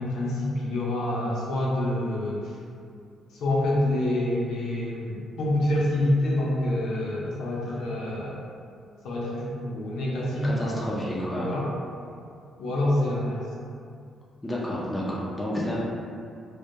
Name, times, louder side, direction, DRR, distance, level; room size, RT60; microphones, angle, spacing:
voice 1, 0.0-2.5 3.3-8.4 9.0-10.9 11.3-11.7 12.6-13.5, left 1 dB, 80° left, -6 dB, 0.5 m, -27 dB
voice 2, 10.4-11.5 14.4-15.8, equal, 10° left, -5 dB, 0.5 m, -30 dB
2.2 x 2.1 x 2.7 m, 2.4 s
cardioid pair, 90°, 0 cm